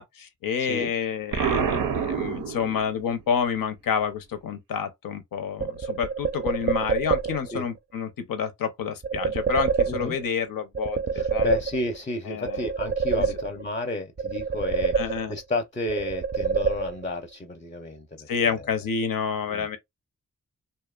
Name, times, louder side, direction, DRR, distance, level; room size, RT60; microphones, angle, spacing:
voice 1, 0.0-11.5 12.3-12.7 13.2-13.3 14.9-15.4 18.3-19.8, left 7 dB, 85° left, 0.6 m, -29 dB
voice 2, 0.6-0.9 7.5-7.7 9.9-10.2 11.1-18.6 19.5-19.8, left 2 dB, 25° left, 0.5 m, -32 dB
Explosion, 1.3-3.1, right 6 dB, 85° right, 0.5 m, -27 dB
sound 1, 5.6-7.6 9.0-10.4 10.7-12.1 12.5-13.8 14.2-15.5 15.9-17.3, right 6 dB, 30° right, 0.4 m, -27 dB
2.7 x 2.1 x 2.2 m
cardioid pair, 50°, 33 cm